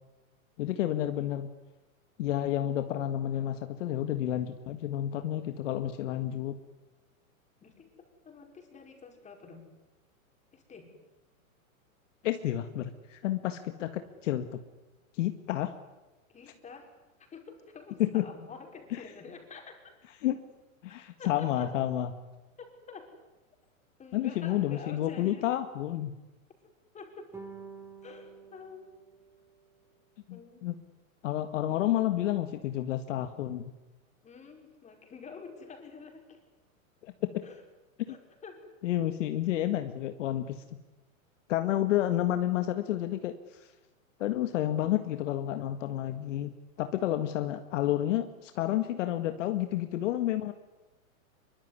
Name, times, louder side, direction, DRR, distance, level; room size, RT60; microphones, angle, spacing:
voice 1, 0.6-1.5 2.2-6.6 12.2-14.6 15.1-15.7 18.0-18.2 20.2-20.4 20.8-22.1 24.1-26.1 30.3-30.7 31.2-33.7 37.0-37.1 38.8-40.6 41.5-43.7 44.2-46.5 46.8-50.5, left 12 dB, 60° left, 9 dB, 1.9 m, -30 dB
voice 2, 3.3-3.6 7.6-9.7 10.5-10.9 14.0-14.1 16.3-16.9 17.2-20.0 21.2-21.7 22.6-23.1 24.0-25.5 26.9-27.3 28.0-28.9 30.3-30.8 34.2-36.4 37.4-37.6 38.1-38.7, left 5 dB, 15° left, 4 dB, 5.3 m, -48 dB
sound 1, 27.3-29.9, right 4 dB, 5° right, 3.8 m, -49 dB
24.0 x 23.5 x 9.7 m, 1.1 s
hypercardioid pair, 145°, 42 cm